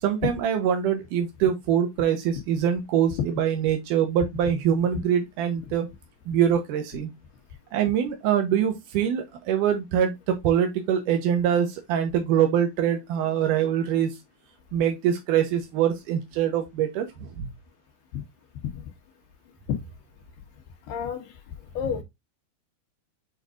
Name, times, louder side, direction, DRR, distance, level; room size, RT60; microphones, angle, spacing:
voice 1, 0.0-5.9 6.3-7.1 7.7-14.2 14.7-17.5, right 9 dB, 80° right, 1.9 m, -24 dB
voice 2, 20.9-21.3 21.7-22.0, left 8 dB, 65° left, 3.3 m, -30 dB
8.7 x 4.4 x 2.5 m
omnidirectional pair, 5.1 m